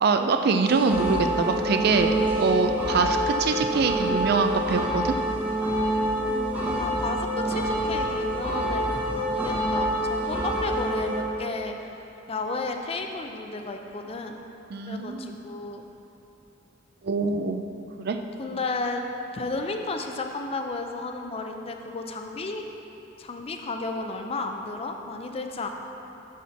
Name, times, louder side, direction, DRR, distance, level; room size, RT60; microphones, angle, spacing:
voice 1, 0.0-5.2 14.7-15.3 17.0-17.6 18.0-18.2, right 4 dB, 55° right, 6 dB, 0.4 m, -24 dB
sound 1, 0.7-11.2, equal, 10° right, 0.8 m, -27 dB
voice 2, 6.3-11.8 12.3-14.4 14.9-15.8 18.4-19.0 19.3-22.6 23.2-25.7, left 3 dB, 30° left, 4 dB, 0.5 m, -33 dB
7.3 x 4.2 x 5.8 m, 2.9 s
head